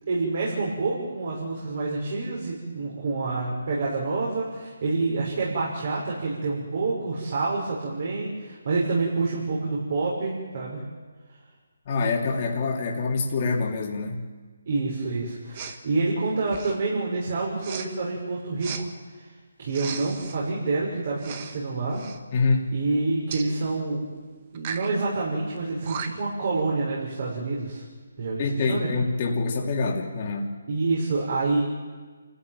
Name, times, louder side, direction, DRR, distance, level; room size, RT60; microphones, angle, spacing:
voice 1, 0.1-10.8 14.7-19.3 19.6-22.0 22.7-24.1 24.5-27.8 28.2-28.9 30.7-31.6, right 3 dB, 50° right, -3 dB, 6.2 m, -27 dB
voice 2, 11.9-14.2 22.3-22.7 28.4-30.5, left 3 dB, 35° left, -1 dB, 3.0 m, -25 dB
Respiratory sounds, 15.5-15.8 16.4-16.9 17.6-17.9 18.6-18.8 19.7-20.4 21.2-21.6 21.9-22.2 23.3-23.5 24.6-24.9 25.6-25.7 25.9-26.3, right 7 dB, 30° right, 1.7 m, -36 dB
28.0 x 14.5 x 9.4 m, 1.4 s
hypercardioid pair, 160°, 0 cm